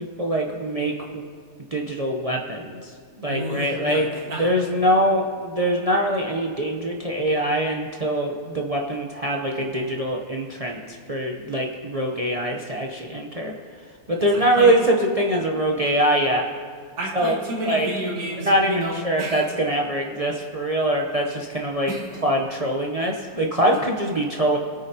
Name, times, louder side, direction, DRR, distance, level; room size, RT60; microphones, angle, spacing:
voice 1, 0.2-1.2 1.7-2.9 3.2-4.1 4.4-13.5 14.1-16.4 17.1-17.3 17.7-17.9 18.4-21.9 22.2-24.6, right 1 dB, 55° right, 0 dB, 0.4 m, -23 dB
voice 2, 3.2-4.5 14.2-14.7 17.0-19.5 21.9-22.2, right 1 dB, 75° right, -4 dB, 3.2 m, -31 dB
24.5 x 8.9 x 2.8 m, 2.3 s
omnidirectional pair, 2.0 m